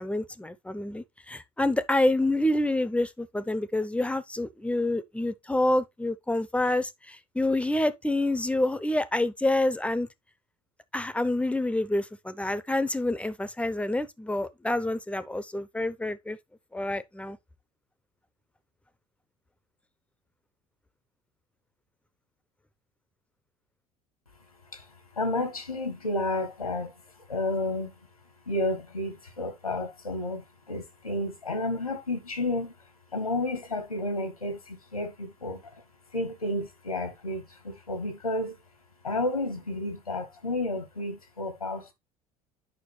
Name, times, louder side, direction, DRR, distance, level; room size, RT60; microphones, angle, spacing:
voice 1, 0.0-10.1 10.9-16.4 16.7-17.4, left 1 dB, 5° left, 0.9 m, -27 dB
voice 2, 24.7-27.9 28.4-32.7 33.1-35.8 36.1-38.6 39.0-41.9, left 1 dB, 85° left, 1.6 m, -31 dB
9.5 x 5.8 x 3.3 m
figure-of-eight pair, 65°, 18 cm